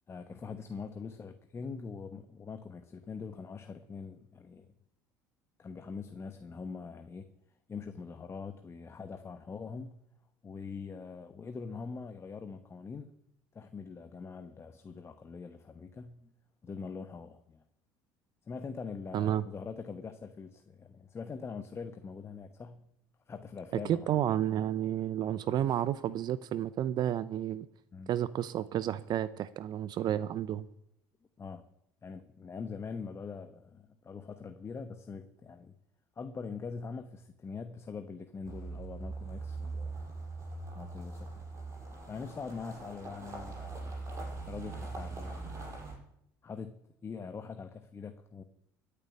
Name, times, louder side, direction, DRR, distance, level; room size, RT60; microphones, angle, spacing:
voice 1, 0.1-4.7 5.6-7.3 7.7-10.0 10.4-13.1 13.5-16.3 16.6-17.6 18.5-22.8 23.3-24.1 27.9-28.1 31.4-31.6 32.0-35.7 36.2-40.0 40.8-41.3 42.1-44.0 44.4-45.6 46.4-48.4, left 5 dB, 30° left, 1.1 m, -43 dB
voice 2, 19.1-19.5 23.9-27.7 28.1-30.7, right 11 dB, 55° right, 0.6 m, -31 dB
sound 1, 38.4-46.0, right 3 dB, 35° right, 6.5 m, -41 dB
14.0 x 6.9 x 9.6 m
supercardioid pair, 80°, 9 cm